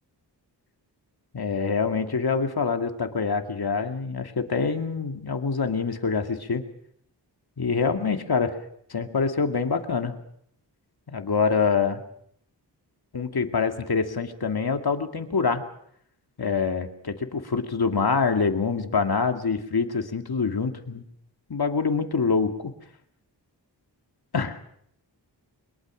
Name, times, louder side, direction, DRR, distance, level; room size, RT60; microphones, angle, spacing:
voice 1, 1.3-6.6 7.6-8.5 8.9-10.2 11.1-12.0 13.1-15.6 16.4-21.0 21.5-22.7 24.3-24.6, left 5 dB, 60° left, 6 dB, 2.4 m, -25 dB
23.0 x 22.0 x 6.4 m, 0.69 s
cardioid pair, 60°, 43 cm